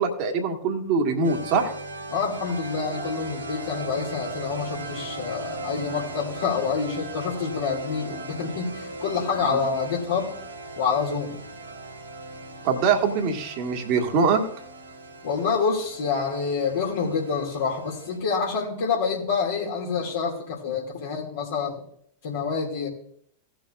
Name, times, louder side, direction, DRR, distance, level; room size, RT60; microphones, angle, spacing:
voice 1, 0.0-1.7 9.5-9.6 12.6-14.4, right 5 dB, 45° right, 3 dB, 1.9 m, -23 dB
sound 1, 1.2-18.2, right 2 dB, 80° right, 2.3 m, -38 dB
voice 2, 2.1-10.4 10.8-11.4 15.2-21.8 22.2-22.9, left 5 dB, 60° left, -4 dB, 2.4 m, -27 dB
17.0 x 6.9 x 2.5 m, 0.64 s
figure-of-eight pair, 90°, 0 cm